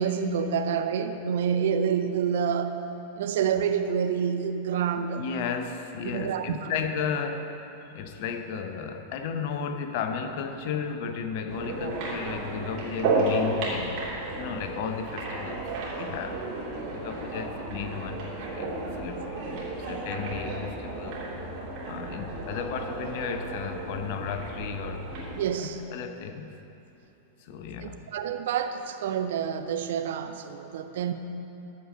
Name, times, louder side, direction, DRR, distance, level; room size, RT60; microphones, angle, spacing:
voice 1, 0.0-2.8 3.2-5.2 6.0-6.7 25.4-25.8 27.8-31.1, right 7 dB, 55° right, 8 dB, 0.6 m, -28 dB
voice 2, 5.2-7.6 7.9-14.0 14.4-16.5 16.9-19.5 19.7-21.2 21.9-25.1 25.6-26.6 27.4-28.1, left 6 dB, 50° left, 7 dB, 0.8 m, -34 dB
sound 1, 11.5-25.4, right 2 dB, 40° right, 3.0 m, -33 dB
14.0 x 5.3 x 7.7 m, 2.9 s
figure-of-eight pair, 90°, 0 cm